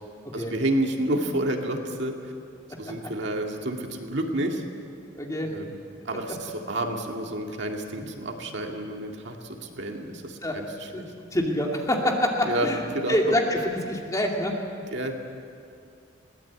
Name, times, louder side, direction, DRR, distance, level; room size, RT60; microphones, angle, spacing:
voice 1, 0.3-2.3 2.8-4.6 5.4-5.8 6.1-10.9 12.5-13.4 14.9-15.2, right 1 dB, 60° right, 2 dB, 2.1 m, -30 dB
voice 2, 5.2-5.5 8.0-8.1 10.4-10.6 10.9-11.0 11.3-12.8 13.1-14.9, equal, 15° left, 0 dB, 2.4 m, -26 dB
22.5 x 17.5 x 8.6 m, 2.4 s
head